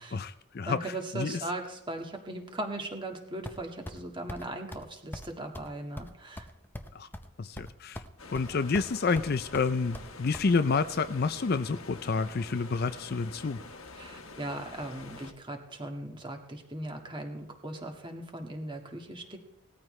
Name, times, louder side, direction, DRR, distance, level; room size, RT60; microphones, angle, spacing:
voice 1, 0.0-1.4 6.9-7.1 7.4-8.0 8.3-13.6, left 4 dB, 45° left, 12 dB, 0.5 m, -29 dB
voice 2, 0.7-6.5 14.0-19.4, right 1 dB, 20° right, 3 dB, 1.8 m, -38 dB
sound 1, 3.5-4.0 4.3-4.4 4.7-4.9 5.1-5.3 5.5-5.7 6.0-7.3 7.6-8.1 8.3-8.9 9.2-10.5, left 1 dB, 10° left, 0.7 m, -41 dB
sound 2, 8.2-15.3, left 3 dB, 70° left, 1.5 m, -47 dB
19.0 x 13.5 x 3.3 m, 0.86 s
head